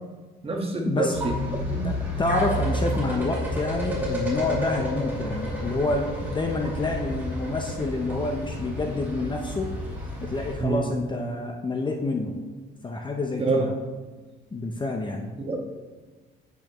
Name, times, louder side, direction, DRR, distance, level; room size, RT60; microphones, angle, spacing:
voice 1, 0.4-1.4 1.7-1.8 10.6-10.9 13.4-13.7 15.4-15.6, right 3 dB, 30° right, 1 dB, 1.4 m, -26 dB
sound 1, 1.1-10.5, equal, 10° right, 2.6 m, -31 dB
voice 2, 1.8-9.8 10.2-12.4 12.8-13.7 14.5-15.3, left 3 dB, 25° left, 2 dB, 0.7 m, -28 dB
8.8 x 8.2 x 3.0 m, 1.3 s
cardioid pair, 125°, 21 cm